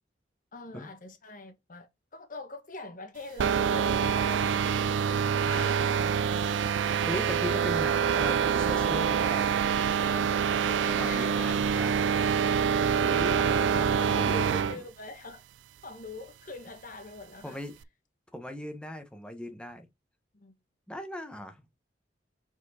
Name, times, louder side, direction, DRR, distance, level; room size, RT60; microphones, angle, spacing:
voice 1, 0.5-4.8 5.1-5.8 10.6-11.6 13.3-15.4 15.8-17.6 20.3-20.6, left 2 dB, 50° left, 1.3 m, -43 dB
sound 1, 3.4-14.8, right 7 dB, 90° right, 0.4 m, -26 dB
voice 2, 5.4-9.5 10.0-10.3 10.9-12.0 12.6-14.8 17.4-17.7 18.3-19.9 20.9-21.6, left 1 dB, 5° left, 1.0 m, -40 dB
5.1 x 4.4 x 4.1 m
head